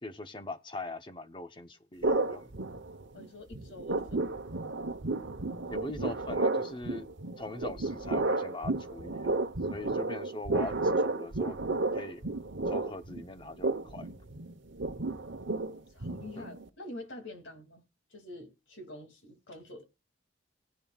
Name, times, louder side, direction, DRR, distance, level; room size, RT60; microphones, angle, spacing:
voice 1, 0.0-2.5 5.7-7.1 7.4-9.4 9.7-11.6 11.9-12.2 12.7-14.1 16.4-16.5, left 2 dB, 25° left, 0.9 m, -41 dB
sound 1, 2.0-3.3 3.5-16.7, right 2 dB, 65° right, 1.0 m, -32 dB
voice 2, 3.1-4.4 15.7-19.8, left 1 dB, 75° left, 2.6 m, -47 dB
17.5 x 10.5 x 2.4 m
head